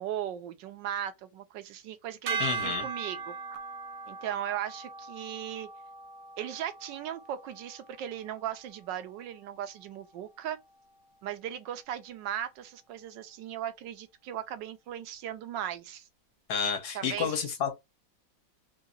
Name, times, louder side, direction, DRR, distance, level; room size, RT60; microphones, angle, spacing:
voice 1, 0.0-3.3 4.1-5.7 6.4-10.6 11.2-16.1 16.9-17.5, right 10 dB, 85° right, 1.4 m, -37 dB
sound 1, 2.3-8.6, right 5 dB, 65° right, 0.9 m, -39 dB
voice 2, 2.4-2.9 16.5-17.7, left 6 dB, 65° left, 1.6 m, -30 dB
3.7 x 2.7 x 2.5 m
omnidirectional pair, 1.9 m